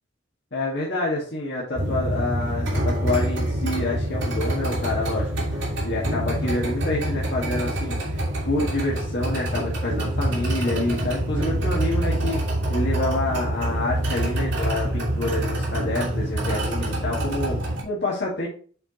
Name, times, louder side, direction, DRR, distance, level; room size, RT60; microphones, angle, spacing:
voice 1, 0.5-8.2 8.4-12.4 12.7-18.5, left 2 dB, 55° left, -5 dB, 1.9 m, -28 dB
sound 1, 1.8-17.8, right 1 dB, 65° right, 2.4 m, -26 dB
7.8 x 4.5 x 3.1 m, 0.43 s
head